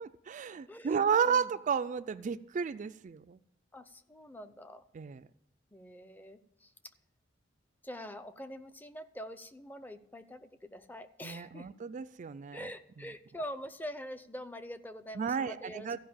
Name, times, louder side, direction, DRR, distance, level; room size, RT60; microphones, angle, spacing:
voice 1, 0.0-3.4 4.9-5.2 11.2-12.6 15.2-16.0, right 6 dB, 40° right, 12 dB, 0.3 m, -32 dB
voice 2, 0.7-1.5 3.7-4.8 5.7-6.7 7.8-11.7 12.5-16.0, equal, 10° left, 12 dB, 0.6 m, -45 dB
14.5 x 5.3 x 8.6 m, 0.76 s
head